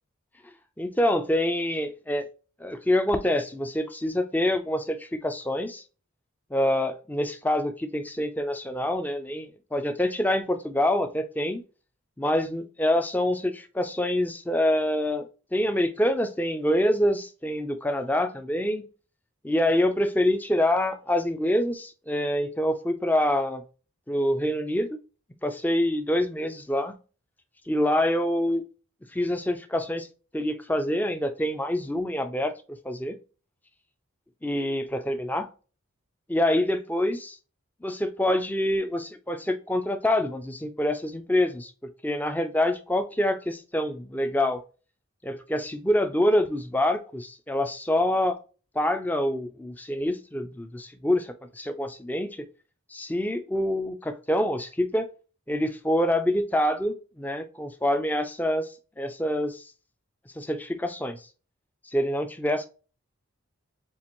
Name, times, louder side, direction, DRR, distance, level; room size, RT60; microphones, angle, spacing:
voice 1, 0.8-2.3 2.6-5.8 6.5-11.6 12.2-18.9 19.4-23.6 24.1-25.0 25.4-27.0 27.7-28.6 29.1-30.1 30.3-32.5 32.8-33.1 34.4-35.5 36.3-37.4 37.8-41.7 42.0-44.6 45.2-48.4 48.7-52.4 52.9-55.1 55.5-59.7 60.4-61.2 61.9-62.7, left 1 dB, 10° left, 0.5 m, -26 dB
7.1 x 2.5 x 2.9 m
head